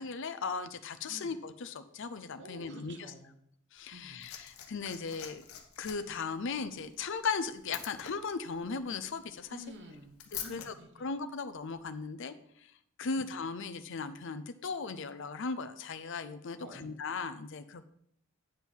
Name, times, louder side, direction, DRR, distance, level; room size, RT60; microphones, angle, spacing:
voice 1, 0.0-3.0 3.7-5.4 5.8-9.6 10.4-10.7 11.0-12.3 12.6-12.7 13.0-17.8, left 4 dB, 60° left, 10 dB, 0.6 m, -37 dB
voice 2, 2.4-3.4 3.9-4.3 9.5-11.1 13.0-13.3 16.6-16.9, equal, 55° right, 5 dB, 1.2 m, -50 dB
Liquid, 3.8-10.7 11.8-11.9, left 9 dB, 90° left, 1.1 m, -47 dB
9.0 x 5.5 x 4.5 m, 0.70 s
head